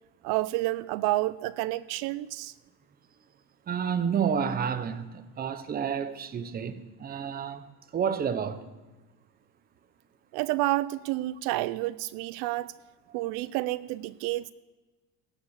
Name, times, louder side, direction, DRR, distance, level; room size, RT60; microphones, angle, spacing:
voice 1, 0.2-2.5 10.3-12.8 13.1-14.5, right 17 dB, 70° right, 0.5 m, -29 dB
voice 2, 3.7-7.6 7.9-8.7 13.1-13.2, right 7 dB, 25° right, 0.8 m, -30 dB
18.5 x 7.1 x 7.2 m
cardioid pair, 150°, 38 cm